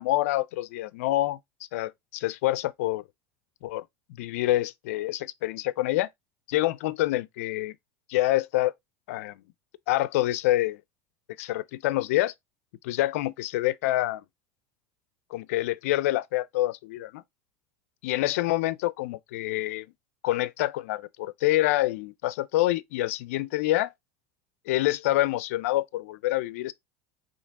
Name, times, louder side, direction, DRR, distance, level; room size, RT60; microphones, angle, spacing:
voice 1, 0.0-1.4 1.7-3.0 3.6-3.8 4.2-6.1 6.5-7.7 8.1-8.7 9.1-9.4 9.9-10.8 11.4-12.3 12.8-14.2 15.3-17.2 18.0-19.9 20.2-23.9 24.7-26.7, left 16 dB, 80° left, 0.4 m, -26 dB
4.4 x 3.1 x 3.4 m
supercardioid pair, 95°, 8 cm